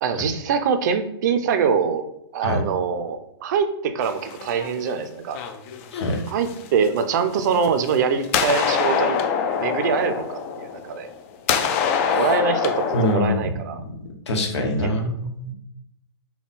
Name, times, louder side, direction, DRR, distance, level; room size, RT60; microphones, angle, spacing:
voice 1, 0.0-2.0 2.3-5.4 6.3-9.2 9.6-11.1 12.1-13.8 14.8-14.9, right 6 dB, 40° right, 9 dB, 0.4 m, -23 dB
sound 1, 4.0-4.9 5.3-6.9 7.5-8.0 8.2-11.2 11.5-13.1, left 6 dB, 30° left, 0.4 m, -24 dB
voice 2, 5.9-6.2 12.0-12.2 12.9-14.0 14.3-15.5, left 1 dB, 85° left, 2 dB, 1.0 m, -25 dB
3.6 x 2.2 x 4.0 m, 0.81 s
hypercardioid pair, 155°, 14 cm